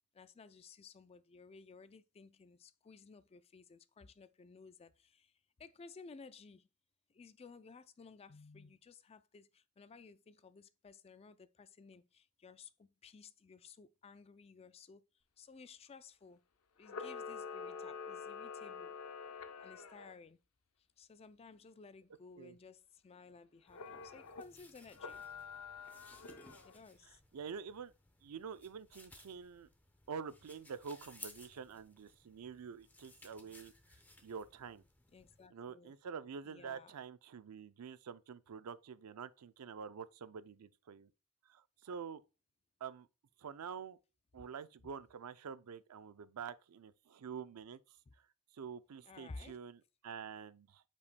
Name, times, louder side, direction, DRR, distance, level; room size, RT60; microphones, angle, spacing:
voice 1, 0.1-5.3 5.6-6.7 7.1-15.0 15.4-16.4 16.8-18.9 19.6-20.4 21.0-25.2 26.6-27.2 35.1-35.9 36.4-36.9 44.3-44.4 48.1-48.2 49.0-49.6, left 4 dB, 25° left, 0.3 m, -56 dB
Camera, 16.8-20.1 23.7-24.4 24.9-26.8, left 5 dB, 75° left, 0.7 m, -47 dB
sound 1, 23.7-35.5, left 2 dB, 10° left, 0.8 m, -60 dB
voice 2, 27.3-27.9 28.2-29.7 30.1-33.7 34.2-34.8 35.5-41.1 41.5-42.2 42.8-43.1 43.4-44.0 44.3-47.8 48.5-50.8, right 6 dB, 90° right, 0.5 m, -47 dB
8.3 x 5.3 x 2.2 m
head